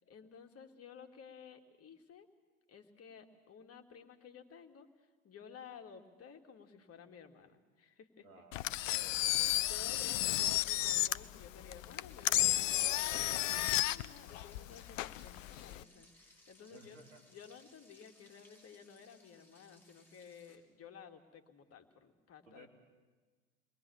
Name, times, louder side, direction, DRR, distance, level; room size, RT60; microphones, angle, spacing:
voice 1, 0.0-2.3 2.7-8.4 8.7-9.1 9.7-22.7, left 6 dB, 35° left, 5 dB, 2.8 m, -55 dB
voice 2, 8.2-9.6 16.7-17.2 22.5-22.7, right 1 dB, 80° right, 4 dB, 3.5 m, -57 dB
Engine, 8.5-15.8, left 15 dB, 70° left, 0.7 m, -33 dB
Frying (food), 11.4-20.6, left 1 dB, 5° left, 6.3 m, -65 dB
29.5 x 22.0 x 7.4 m, 1.4 s
figure-of-eight pair, 75°, 41 cm